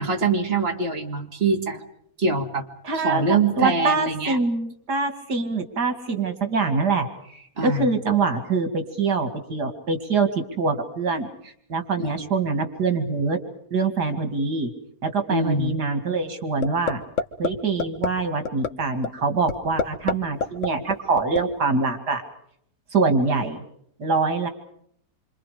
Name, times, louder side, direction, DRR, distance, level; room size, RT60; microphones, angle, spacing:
voice 1, 0.0-1.8 2.2-2.7 2.9-4.4 7.6-7.9 12.0-12.3 15.3-15.8, right 4 dB, 35° right, 2 dB, 2.8 m, -24 dB
voice 2, 2.8-13.4 13.7-14.7 15.0-17.0 17.4-22.2 22.9-23.6 24.0-24.5, right 4 dB, 80° right, 6 dB, 2.9 m, -24 dB
sound 1, 16.6-16.9 17.2-17.5 17.8-18.1 18.5-18.7 19.0-19.1 19.5-20.1 20.4-21.4, left 5 dB, 50° left, 1.6 m, -23 dB
27.5 x 26.0 x 5.1 m, 0.68 s
omnidirectional pair, 1.7 m